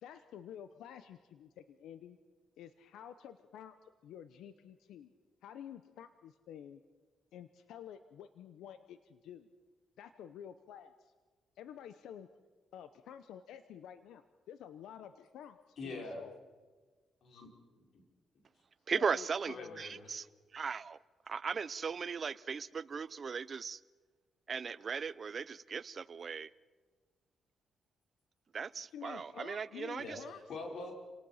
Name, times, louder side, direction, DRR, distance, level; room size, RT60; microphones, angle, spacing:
voice 1, 0.0-2.2 2.6-5.1 5.4-6.8 7.3-9.5 10.0-11.1 11.6-12.3 12.7-16.4 18.9-19.8 28.9-30.4, left 9 dB, 85° left, 11 dB, 0.8 m, -50 dB
voice 2, 15.8-16.3 17.2-18.0 19.5-20.1 30.0-30.9, left 2 dB, 70° left, 1 dB, 5.0 m, -45 dB
voice 3, 18.9-20.3 20.5-21.0 21.3-23.8 24.5-26.5 28.5-30.2, right 6 dB, 45° right, 18 dB, 0.6 m, -37 dB
28.5 x 18.5 x 5.7 m, 1.4 s
cardioid pair, 75°, 0 cm